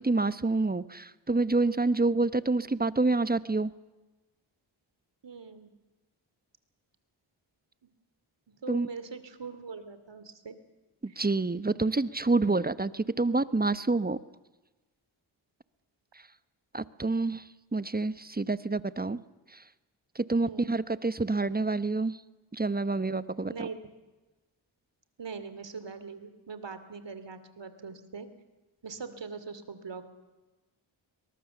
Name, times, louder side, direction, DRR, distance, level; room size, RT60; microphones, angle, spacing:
voice 1, 0.0-3.7 8.7-8.9 11.0-14.2 16.7-17.4 17.7-19.2 20.2-22.2 22.5-23.7, right 3 dB, 20° right, 15 dB, 1.0 m, -27 dB
voice 2, 5.2-5.7 8.6-10.6 11.1-11.3 20.4-20.7 23.5-23.8 25.2-28.3 28.8-30.1, right 5 dB, 55° right, 12 dB, 2.8 m, -42 dB
22.5 x 20.5 x 7.2 m, 1.2 s
cardioid pair, 45°, 50 cm